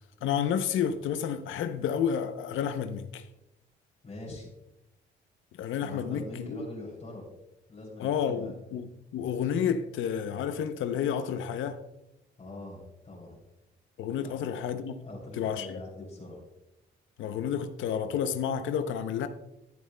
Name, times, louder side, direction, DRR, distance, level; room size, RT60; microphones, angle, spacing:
voice 1, 0.2-3.3 5.5-6.6 8.0-11.8 14.0-15.0 15.3-15.8 17.2-19.3, left 8 dB, 80° left, 0.7 m, -30 dB
voice 2, 4.0-4.5 5.8-7.3 7.7-8.5 12.4-13.4 14.2-14.3 15.0-16.4, left 2 dB, 35° left, 3.0 m, -43 dB
12.5 x 10.5 x 2.2 m
cardioid pair, 90°, 20 cm